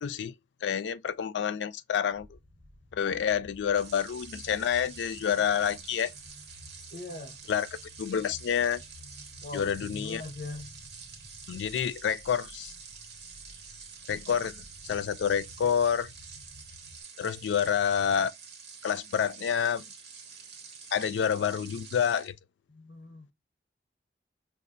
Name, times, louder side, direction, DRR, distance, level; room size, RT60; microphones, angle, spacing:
voice 1, 0.0-0.3 0.6-2.3 2.9-6.1 7.5-7.7 8.0-8.8 9.5-10.2 11.5-12.7 14.1-16.1 17.2-18.3 18.8-19.8 20.9-22.3, left 8 dB, 85° left, 0.3 m, -28 dB
sound 1, 2.1-17.0, left 1 dB, 10° right, 1.3 m, -53 dB
sound 2, 3.7-22.3, right 6 dB, 75° right, 1.1 m, -48 dB
voice 2, 6.9-7.4 9.4-10.7 22.7-23.3, left 2 dB, 55° left, 0.8 m, -41 dB
5.7 x 2.4 x 2.5 m
head